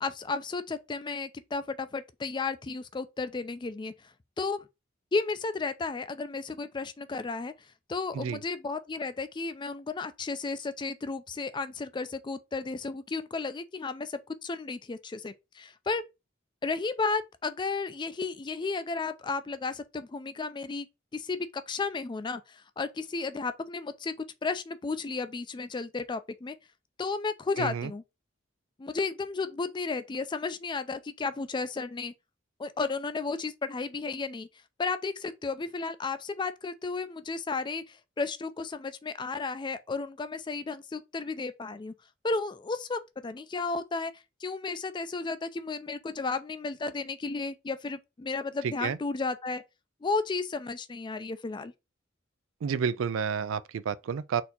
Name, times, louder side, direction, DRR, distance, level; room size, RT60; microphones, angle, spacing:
voice 1, 0.0-3.9 4.4-4.7 5.1-7.5 7.9-16.1 16.6-20.9 21.1-24.1 24.4-26.5 27.0-28.0 28.8-32.1 32.6-34.5 34.8-41.9 42.2-44.1 44.4-49.6 50.0-51.7, left 4 dB, 25° left, 0.4 m, -33 dB
voice 2, 27.6-27.9 48.8-49.0 52.6-54.4, right 6 dB, 85° right, 0.4 m, -30 dB
4.2 x 2.8 x 3.9 m
head